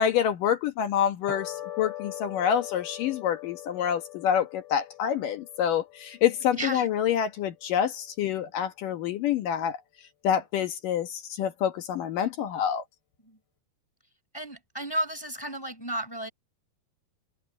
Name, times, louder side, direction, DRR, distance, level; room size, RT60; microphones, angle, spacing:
voice 1, 0.0-9.8 10.2-12.8, left 9 dB, 65° left, 2.5 m, -27 dB
sound 1, 1.3-7.8, left 13 dB, 80° left, 8.2 m, -42 dB
voice 2, 6.5-6.9 13.2-13.4 14.3-16.3, right 1 dB, 5° left, 6.7 m, -33 dB
omnidirectional pair, 4.8 m